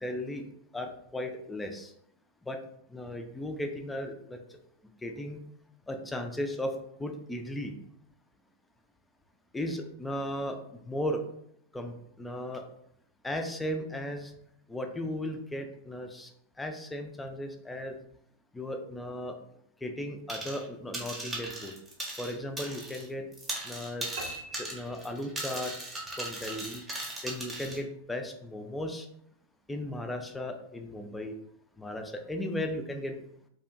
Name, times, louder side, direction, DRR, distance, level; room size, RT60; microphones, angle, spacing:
voice 1, 0.0-0.5 0.7-1.9 2.5-2.6 2.9-4.4 5.0-5.4 5.9-6.7 7.0-7.7 9.5-11.2 11.7-12.6 13.2-14.3 14.7-16.3 16.6-18.0 18.5-19.3 19.8-21.7 22.2-23.2 23.6-24.1 24.5-25.7 26.2-26.8 27.2-29.1 29.7-31.3 31.8-33.2, left 1 dB, 10° left, 5 dB, 0.3 m, -36 dB
sound 1, 20.3-20.7 20.9-23.1 23.3-27.8, right 1 dB, 15° right, 0.7 m, -38 dB
sound 2, 24.2-25.7, right 2 dB, 50° right, 0.6 m, -43 dB
2.7 x 2.1 x 2.4 m, 0.72 s
figure-of-eight pair, 90°, 0 cm